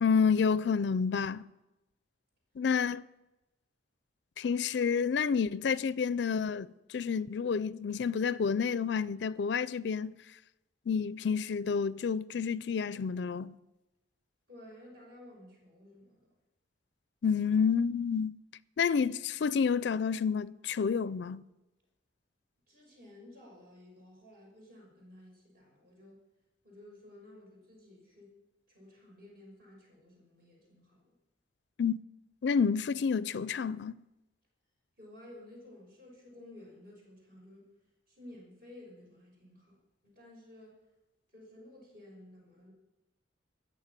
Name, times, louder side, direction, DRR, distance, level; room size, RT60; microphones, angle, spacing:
voice 1, 0.0-1.4 2.6-3.1 4.4-10.2 10.9-13.5 17.2-18.3 18.8-21.4 31.8-32.0 32.4-34.0, left 6 dB, 65° left, 0.4 m, -29 dB
voice 2, 14.5-16.3 22.7-26.2 26.6-28.3 28.7-31.1 35.0-37.7 38.1-39.8 40.0-40.8 41.3-42.7, left 1 dB, 50° right, 6.3 m, -54 dB
20.0 x 7.2 x 7.4 m
head